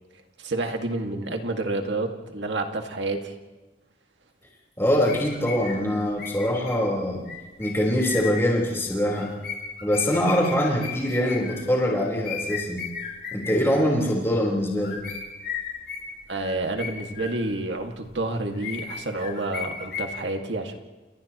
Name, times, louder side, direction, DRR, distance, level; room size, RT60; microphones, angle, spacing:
voice 1, 0.4-3.3 16.3-20.8, right 2 dB, 80° right, 4 dB, 2.0 m, -29 dB
voice 2, 4.8-7.2 7.6-9.3 9.8-12.8 13.3-15.0, equal, 15° left, -3 dB, 4.1 m, -23 dB
sound 1, 5.0-8.5 9.1-11.7 12.2-13.8 14.6-17.7 18.1-20.0, left 6 dB, 60° left, 5.0 m, -36 dB
29.5 x 29.0 x 3.1 m, 1.2 s
head